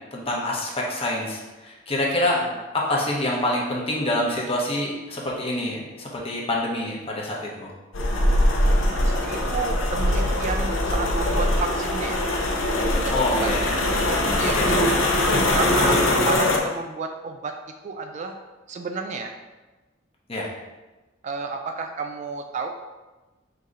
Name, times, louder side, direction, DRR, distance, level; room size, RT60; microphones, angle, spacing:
voice 1, 0.1-2.4 2.7-7.7 13.1-13.8 14.5-14.7 20.3-20.5, left 1 dB, 30° left, -2 dB, 0.8 m, -26 dB
sound 1, 7.9-16.6, left 1 dB, 85° left, 0.8 m, -22 dB
voice 2, 8.7-12.2 13.0-13.5 14.4-14.6 15.5-17.5 17.8-18.4 18.7-19.3 21.2-22.7, right 4 dB, 35° right, 4 dB, 0.3 m, -31 dB
3.8 x 2.8 x 4.8 m, 1.1 s
head